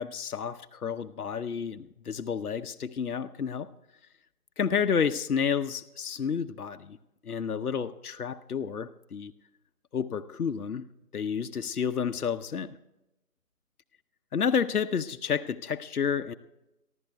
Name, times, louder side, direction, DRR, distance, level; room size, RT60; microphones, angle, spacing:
voice 1, 0.0-3.7 4.6-7.0 7.2-9.3 9.9-10.8 11.1-12.7 14.3-16.3, left 7 dB, 80° left, 9 dB, 0.8 m, -30 dB
23.0 x 15.0 x 2.3 m, 0.94 s
figure-of-eight pair, 160°, 44 cm